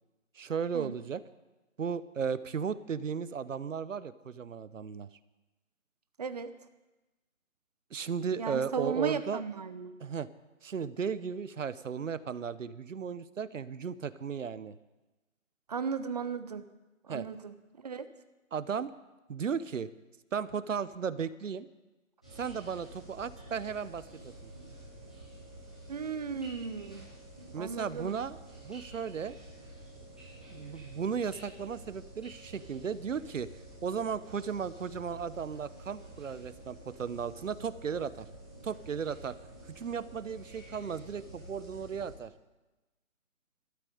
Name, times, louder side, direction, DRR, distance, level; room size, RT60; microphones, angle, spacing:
voice 1, 0.3-1.2 1.8-5.1 7.9-9.4 10.0-10.3 10.6-14.8 17.1-17.3 18.5-18.9 19.3-19.9 20.3-21.7 22.3-24.5 27.5-29.3 30.5-33.5 33.8-38.3 38.6-39.3 39.7-42.3, right 6 dB, 65° right, 15 dB, 0.9 m, -35 dB
voice 2, 6.2-6.5 8.4-10.0 15.7-16.6 17.0-18.1 25.9-27.1 27.6-28.2, right 6 dB, 30° right, 11 dB, 0.7 m, -36 dB
sound 1, 22.2-42.1, right 1 dB, 5° left, 0.6 m, -50 dB
13.0 x 13.0 x 7.9 m, 1.1 s
hypercardioid pair, 160°, 41 cm